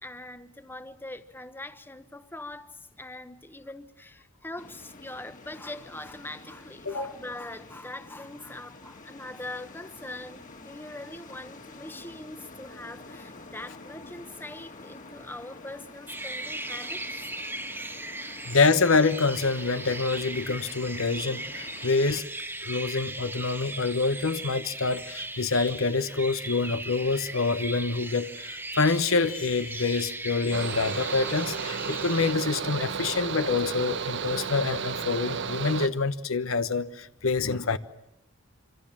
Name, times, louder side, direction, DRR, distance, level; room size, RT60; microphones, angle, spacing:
voice 1, 0.0-17.0 18.4-18.5, left 2 dB, 10° left, 1.1 m, -42 dB
sound 1, 4.6-22.2, left 3 dB, 40° left, 2.3 m, -48 dB
sound 2, 16.1-32.3, right 2 dB, 10° right, 1.3 m, -38 dB
voice 2, 18.4-22.2 22.6-37.8, left 4 dB, 80° left, 1.1 m, -26 dB
Mechanical fan, 30.5-35.9, right 6 dB, 60° right, 1.1 m, -33 dB
26.5 x 25.5 x 7.5 m
head